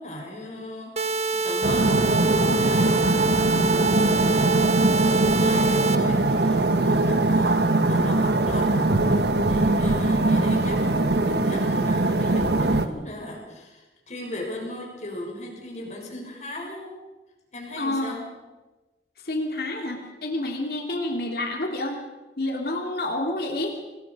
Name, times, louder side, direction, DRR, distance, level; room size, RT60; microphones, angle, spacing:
voice 1, 0.0-16.9 17.5-18.3, left 1 dB, 40° left, 0 dB, 6.2 m, -38 dB
sound 1, 1.0-6.0, right 4 dB, 35° right, 1.3 m, -26 dB
sound 2, 1.6-12.9, right 2 dB, 70° right, 1.4 m, -21 dB
voice 2, 17.8-18.1 19.2-22.0 22.4-23.8, left 1 dB, 60° left, 2 dB, 2.8 m, -28 dB
26.5 x 20.0 x 5.4 m, 1.2 s
head